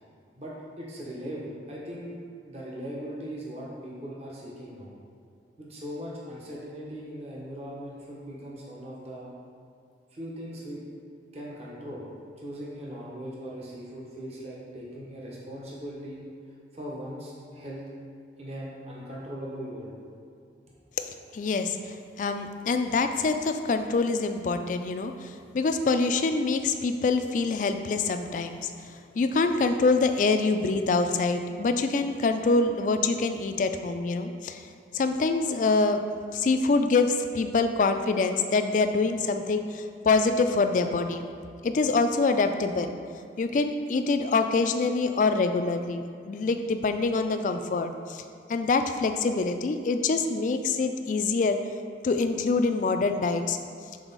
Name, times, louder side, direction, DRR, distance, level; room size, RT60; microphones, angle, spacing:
voice 1, 0.4-2.2 2.5-4.9 5.6-9.3 10.1-10.8 11.3-12.1 12.4-16.2 16.7-17.8 18.4-19.9, equal, 35° right, -5 dB, 0.9 m, -39 dB
voice 2, 21.3-28.7 29.1-34.6 34.9-36.0 36.3-41.4 41.6-43.0 43.4-48.2 48.5-51.6 52.0-53.6, left 3 dB, 45° left, 7 dB, 0.3 m, -25 dB
6.2 x 4.0 x 3.9 m, 2.3 s
head